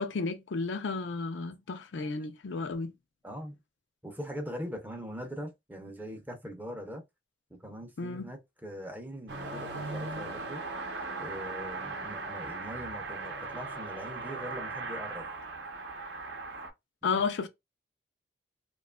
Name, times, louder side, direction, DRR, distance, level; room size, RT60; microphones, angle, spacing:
voice 1, 0.0-2.9 8.0-8.3 17.0-17.5, left 4 dB, 80° left, 0.4 m, -32 dB
voice 2, 3.2-3.6 4.0-7.0 7.5-10.6 11.2-15.3 17.0-17.2, equal, 10° right, 0.5 m, -42 dB
Car passing by / Accelerating revving vroom, 9.3-16.7, right 3 dB, 65° right, 0.7 m, -38 dB
2.8 x 2.3 x 2.2 m
head